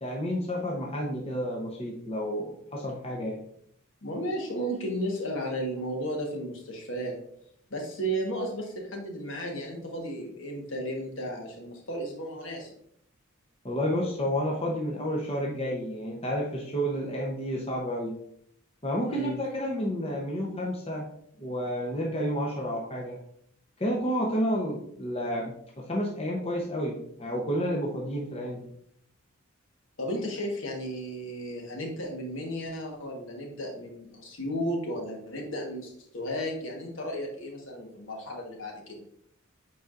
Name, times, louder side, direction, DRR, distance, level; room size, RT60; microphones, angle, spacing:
voice 1, 0.0-3.4 13.6-18.2 18.8-21.1 21.4-23.2 23.8-28.7, equal, 25° left, -2 dB, 0.8 m, -30 dB
voice 2, 4.0-7.2 7.7-12.7 19.1-19.4 30.0-39.0, equal, 60° left, 0 dB, 1.4 m, -34 dB
8.1 x 4.6 x 2.5 m, 0.69 s
head